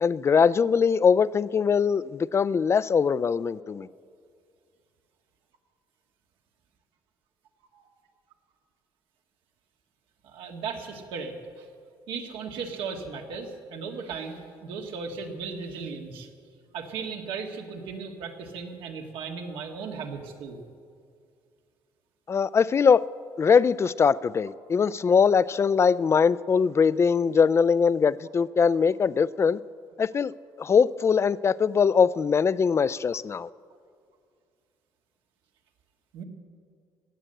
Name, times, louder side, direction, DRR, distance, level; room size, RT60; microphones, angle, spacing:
voice 1, 0.0-3.9 22.3-23.1 23.4-29.6 30.0-30.3 30.6-33.5, left 6 dB, 30° left, 19 dB, 0.3 m, -22 dB
voice 2, 10.2-11.7 12.1-16.3 16.7-20.6 36.1-36.2, right 5 dB, 85° right, 3 dB, 1.8 m, -36 dB
17.0 x 10.0 x 7.8 m, 2.2 s
cardioid pair, 105°, 9 cm